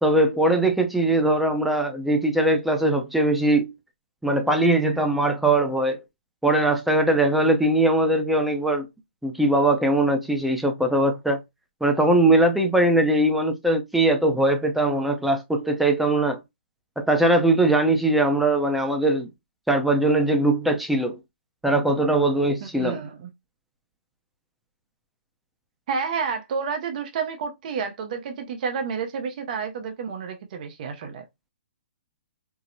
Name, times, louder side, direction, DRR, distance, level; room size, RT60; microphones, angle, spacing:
voice 1, 0.0-3.7 4.2-6.0 6.4-8.9 9.2-11.4 11.8-16.4 17.0-19.3 19.7-21.2 21.6-23.0, right 1 dB, ahead, 0.5 m, -21 dB
voice 2, 22.6-23.3 25.9-31.2, right 5 dB, 45° right, 0.6 m, -30 dB
4.6 x 2.0 x 2.6 m
hypercardioid pair, 150°, 6 cm